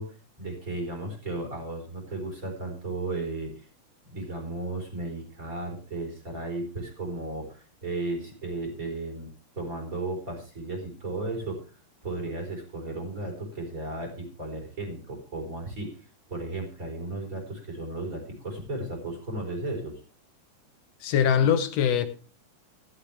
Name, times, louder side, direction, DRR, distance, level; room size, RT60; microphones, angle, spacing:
voice 1, 0.0-3.7 4.1-9.3 9.5-11.8 12.0-20.0, right 2 dB, 25° right, 4.6 m, -35 dB
voice 2, 21.0-22.1, left 8 dB, 65° left, 1.8 m, -22 dB
15.0 x 12.0 x 3.4 m
omnidirectional pair, 3.7 m